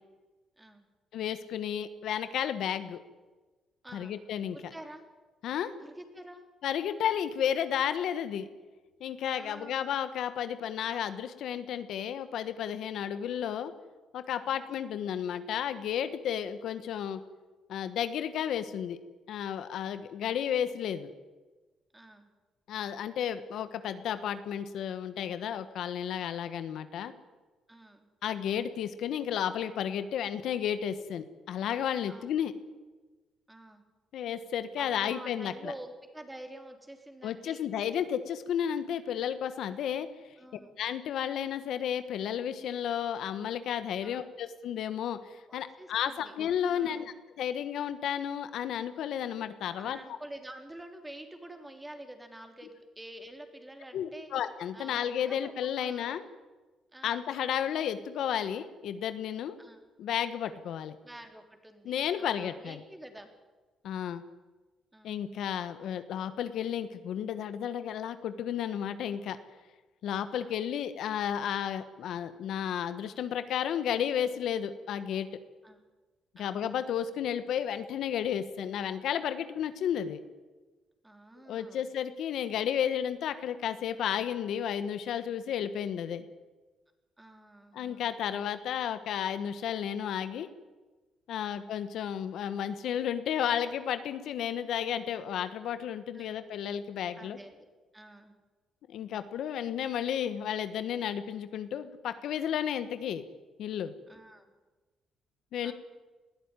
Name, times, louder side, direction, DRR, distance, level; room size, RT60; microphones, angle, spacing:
voice 1, 1.1-3.0 3.9-4.6 5.4-5.7 6.6-8.5 9.0-13.7 14.1-17.2 17.7-19.0 19.3-21.1 22.7-27.1 28.2-32.5 34.1-35.7 37.2-40.1 40.8-50.0 53.9-56.2 57.0-59.6 60.0-60.9 61.8-62.8 63.8-64.2 65.0-69.4 70.0-75.3 76.3-80.2 81.5-86.2 87.7-90.5 91.3-97.4 98.9-103.2 103.6-103.9 105.5-105.7, left 9 dB, 75° left, 11 dB, 1.3 m, -32 dB
voice 2, 3.8-4.1 4.5-5.0 5.8-6.5 9.2-9.9 14.5-14.7 21.9-22.3 27.7-28.1 32.1-32.3 33.5-33.8 34.8-37.7 40.4-40.8 44.0-44.4 45.5-46.3 46.7-47.1 49.8-54.3 54.7-55.5 55.8-56.1 56.9-57.3 59.6-59.8 61.0-63.3 64.9-65.4 70.3-70.6 75.6-75.8 76.4-76.6 81.0-81.9 87.2-88.1 91.4-91.7 96.1-96.5 97.1-97.7 97.9-98.3 104.1-104.4 105.6-105.7, right 1 dB, 10° right, 5 dB, 3.4 m, -48 dB
20.5 x 14.0 x 9.8 m, 1.2 s
cardioid pair, 90°, 0 cm